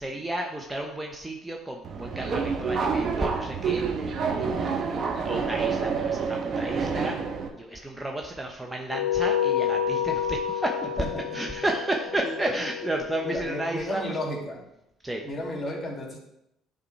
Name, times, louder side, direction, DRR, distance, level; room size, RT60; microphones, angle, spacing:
voice 1, 0.0-3.8 4.4-5.0 5.2-7.2 7.6-10.7 11.3-14.0 15.0-15.2, right 1 dB, 10° right, 1 dB, 0.9 m, -32 dB
Subway metro underground, 1.8-7.5, right 5 dB, 50° right, 1.1 m, -28 dB
sound 1, 8.9-13.7, left 8 dB, 85° left, 0.6 m, -29 dB
voice 2, 11.0-11.5 12.2-12.6 13.2-14.6 15.2-16.2, left 1 dB, 30° left, 0 dB, 2.3 m, -33 dB
9.6 x 3.8 x 4.6 m, 0.83 s
hypercardioid pair, 55°, 0 cm